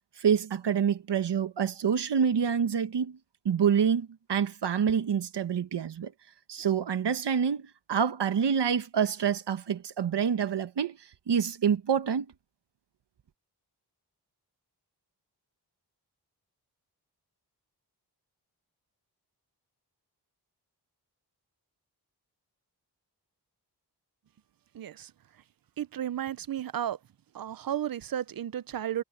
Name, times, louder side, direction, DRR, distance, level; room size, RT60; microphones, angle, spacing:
voice 1, 0.2-3.2 3.4-6.1 6.5-11.0 11.3-12.3, right 7 dB, 85° right, 1.3 m, -27 dB
voice 2, 24.7-25.1 25.8-27.0 27.3-29.0, right 10 dB, 60° right, 0.7 m, -33 dB
wide cardioid pair, 75°, 40 cm